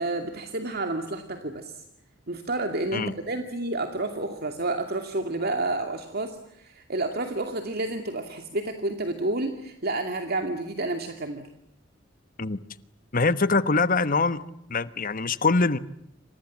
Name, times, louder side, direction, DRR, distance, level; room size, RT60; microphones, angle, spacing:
voice 1, 0.0-1.8 2.3-11.4, right 2 dB, 55° right, 2.4 m, -30 dB
voice 2, 13.1-14.4 14.7-15.8, left 3 dB, 45° left, 1.2 m, -23 dB
28.0 x 27.0 x 7.4 m
head